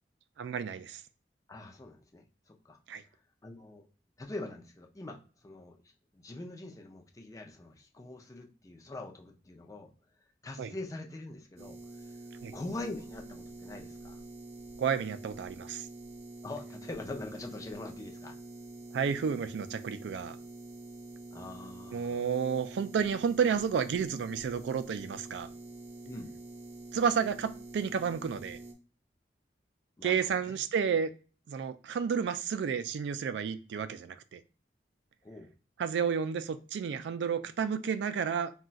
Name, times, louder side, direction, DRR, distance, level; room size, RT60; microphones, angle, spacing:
voice 1, 0.4-1.0 2.9-3.0 10.6-10.7 12.4-12.5 14.8-15.9 18.9-20.4 21.9-25.5 26.9-28.6 30.0-31.1 31.5-34.4 35.8-38.5, right 6 dB, 85° right, 0.3 m, -31 dB
voice 2, 1.5-2.8 3.4-3.9 4.2-9.9 10.4-12.1 12.5-14.2 16.4-18.3 21.3-22.2 26.0-26.3 30.0-30.6 35.2-35.5, left 2 dB, 20° left, 0.4 m, -43 dB
sound 1, 11.6-28.7, right 2 dB, 40° right, 0.6 m, -47 dB
2.4 x 2.2 x 3.9 m
head